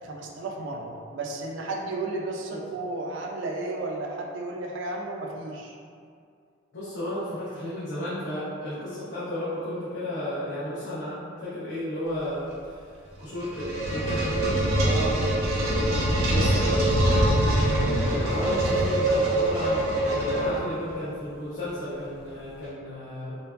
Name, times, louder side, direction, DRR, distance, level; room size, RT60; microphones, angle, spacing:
voice 1, 0.0-5.8 14.8-15.2, right 2 dB, 55° right, 0 dB, 0.3 m, -33 dB
voice 2, 6.7-12.9 13.2-14.6 16.3-23.4, equal, 55° left, -12 dB, 0.6 m, -33 dB
sound 1, 13.2-20.9, right 1 dB, 85° right, 0.7 m, -24 dB
3.1 x 2.3 x 2.3 m, 2.3 s
head